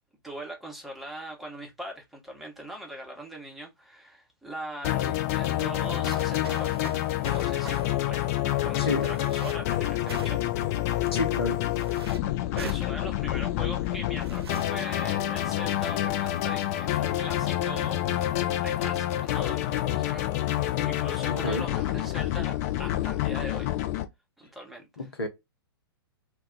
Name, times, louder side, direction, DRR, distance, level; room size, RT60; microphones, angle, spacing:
voice 1, 0.2-6.9 7.3-7.8 8.1-8.3 8.6-10.4 12.5-18.0 18.6-23.7 24.4-25.1, right 1 dB, ahead, 0.9 m, -41 dB
sound 1, 4.8-24.0, left 13 dB, 40° left, 0.5 m, -28 dB
sound 2, 5.8-7.9 9.0-9.5 10.1-10.6 11.7-12.2 12.6-12.9 14.2-14.7, right 5 dB, 75° right, 0.5 m, -42 dB
voice 2, 8.8-9.1 11.1-11.6 21.3-21.7 25.0-25.3, left 2 dB, 75° left, 0.9 m, -30 dB
2.2 x 2.2 x 3.8 m
figure-of-eight pair, 110°, 13 cm